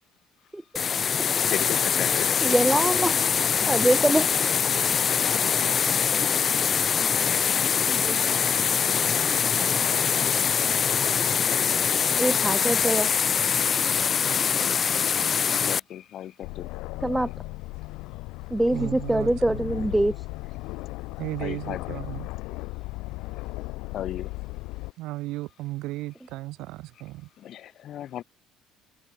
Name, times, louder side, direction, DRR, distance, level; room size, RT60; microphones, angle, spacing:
sound 1, 0.8-15.8, left 7 dB, 30° left, 0.8 m, -23 dB
voice 1, 1.4-2.3 9.8-10.2 15.7-16.7 21.4-22.0 23.2-23.3 23.9-24.3 27.4-28.2, left 11 dB, 50° left, 4.1 m, -36 dB
voice 2, 2.4-3.2 3.7-4.3 7.9-8.2 12.2-13.1 17.0-17.3 18.5-20.1, right 1 dB, 5° right, 0.8 m, -24 dB
Aircraft, 16.4-24.9, left 22 dB, 90° left, 6.6 m, -36 dB
voice 3, 18.7-19.7 21.2-22.3 25.0-27.3, right 19 dB, 75° right, 5.0 m, -35 dB
cardioid pair, 145°, 0 cm